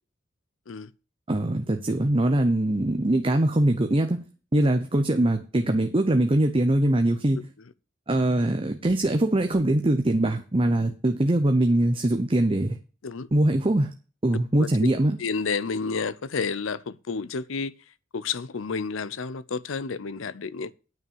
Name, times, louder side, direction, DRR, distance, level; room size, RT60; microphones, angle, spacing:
voice 1, 1.3-4.2 4.5-7.4 8.1-12.8 13.3-13.9 14.2-15.2, right 1 dB, 25° right, 0.8 m, -22 dB
voice 2, 15.2-17.7 18.1-20.7, left 5 dB, 85° left, 0.6 m, -30 dB
9.5 x 5.5 x 7.2 m
head